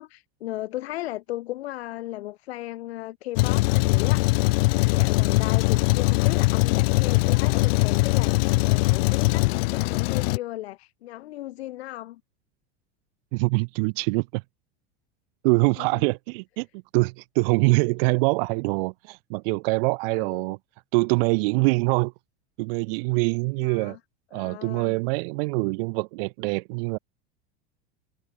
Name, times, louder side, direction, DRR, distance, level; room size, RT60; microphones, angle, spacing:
voice 1, 0.0-12.2 15.8-16.0 20.2-20.5 23.6-24.0 24.3-25.0, left 16 dB, 85° left, 4.8 m, -36 dB
Truck, 3.4-10.4, left 24 dB, 70° left, 1.0 m, -21 dB
voice 2, 13.3-14.4 15.4-20.6 20.9-22.1 22.6-24.0 24.3-27.0, right 29 dB, 65° right, 0.7 m, -24 dB
supercardioid pair, 130°, 31 cm